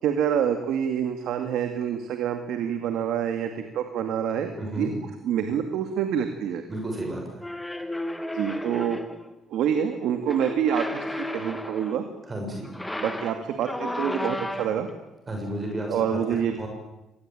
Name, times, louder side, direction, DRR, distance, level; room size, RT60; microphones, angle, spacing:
voice 1, 0.0-4.9 5.2-6.6 8.3-9.0 9.5-12.1 13.0-14.9 15.9-16.6, right 8 dB, 80° right, 7 dB, 2.4 m, -27 dB
voice 2, 4.6-4.9 6.7-7.4 12.3-12.7 15.3-16.2 16.6-16.7, right 1 dB, 30° right, 2 dB, 6.6 m, -32 dB
sound 1, 7.4-9.3 10.2-12.0 12.6-14.9, left 1 dB, 10° left, 2.5 m, -33 dB
25.5 x 20.0 x 9.2 m, 0.97 s
cardioid pair, 95°, 0 cm